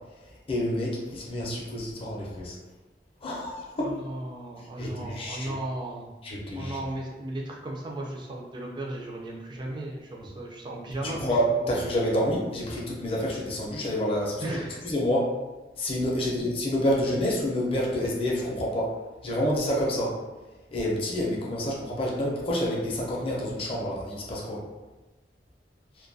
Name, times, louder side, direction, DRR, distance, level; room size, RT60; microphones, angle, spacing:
voice 1, 0.5-2.6 3.2-3.9 4.8-5.5 6.2-6.8 11.0-14.6 14.8-15.3 15.8-18.9 19.2-20.2 20.7-24.6, equal, 35° left, -3 dB, 0.5 m, -28 dB
voice 2, 3.8-6.1 6.6-11.3 14.4-14.8 16.2-16.3, right 1 dB, 25° right, -1 dB, 0.4 m, -36 dB
2.2 x 2.2 x 2.6 m, 1.1 s
head